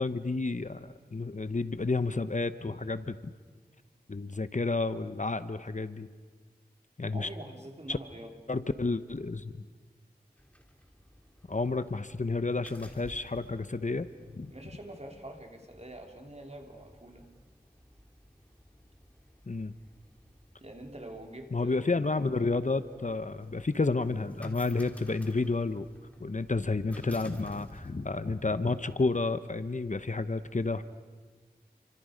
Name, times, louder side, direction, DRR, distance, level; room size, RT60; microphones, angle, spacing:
voice 1, 0.0-3.3 4.1-6.1 7.0-7.3 7.9-8.0 8.5-9.7 11.5-14.1 14.3-14.5 19.5-19.7 21.5-25.9 26.2-30.8, left 3 dB, 50° left, 12 dB, 0.9 m, -31 dB
voice 2, 7.1-8.3 14.5-17.3 20.6-21.8, right 1 dB, 40° right, 2 dB, 3.2 m, -45 dB
sound 1, 10.4-28.9, equal, 10° left, 3.1 m, -54 dB
29.5 x 25.0 x 5.2 m, 1.5 s
wide cardioid pair, 45°, 17 cm